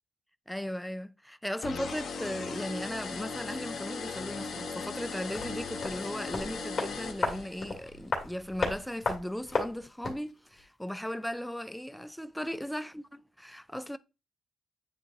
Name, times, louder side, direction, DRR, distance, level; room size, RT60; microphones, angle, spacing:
voice 1, 0.5-14.0, equal, 5° left, 0.4 m, -37 dB
sound 1, 1.6-7.8, left 4 dB, 65° left, 1.2 m, -38 dB
sound 2, 5.3-10.3 10.6-10.7, left 3 dB, 45° left, 2.4 m, -35 dB
9.1 x 3.8 x 2.9 m
cardioid pair, 80°, 0 cm